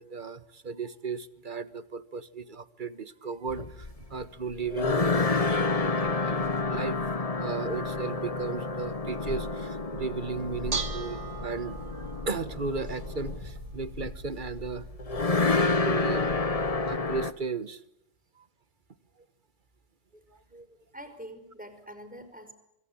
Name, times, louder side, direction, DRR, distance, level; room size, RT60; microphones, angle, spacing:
voice 1, 0.0-14.9 15.8-16.6 16.9-17.8 18.4-18.5 20.3-20.7, right 4 dB, 40° right, 14 dB, 1.4 m, -36 dB
sound 1, 3.5-17.3, left 3 dB, 30° left, 1.2 m, -29 dB
Bell / Dishes pots and pans, 10.3-17.0, right 4 dB, 65° right, 2.2 m, -40 dB
voice 2, 20.9-22.5, right 1 dB, 5° right, 8 dB, 5.1 m, -44 dB
25.5 x 24.5 x 8.8 m, 0.84 s
omnidirectional pair, 1.3 m